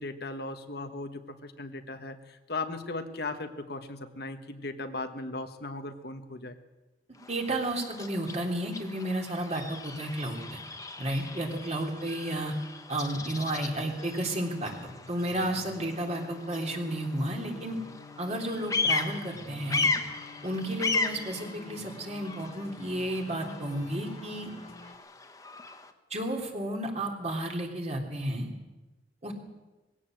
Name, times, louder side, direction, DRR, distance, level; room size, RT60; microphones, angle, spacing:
voice 1, 0.0-6.6, left 2 dB, 60° left, 7 dB, 1.4 m, -37 dB
Bird vocalization bird call bird song, 7.1-25.9, left 3 dB, 20° left, 1.3 m, -37 dB
voice 2, 7.1-10.6 11.0-12.5 12.9-14.7 15.1-17.8 18.2-19.9 20.4-24.5 26.1-28.5 29.2-29.3, right 1 dB, 40° right, 1 dB, 3.4 m, -32 dB
sound 1, 14.0-24.9, left 2 dB, 35° left, 1.6 m, -49 dB
21.0 x 16.5 x 7.8 m, 1.1 s
head